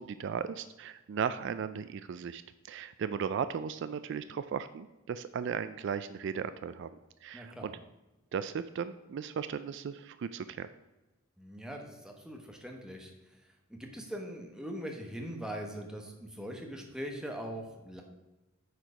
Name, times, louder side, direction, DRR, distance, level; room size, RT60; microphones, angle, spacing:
voice 1, 0.0-6.9 7.2-7.7 8.3-10.7, right 7 dB, 55° right, 12 dB, 0.3 m, -36 dB
voice 2, 7.3-7.7 11.4-13.1 13.7-18.0, equal, 5° right, 2 dB, 1.1 m, -41 dB
9.3 x 4.6 x 5.0 m, 1.1 s
head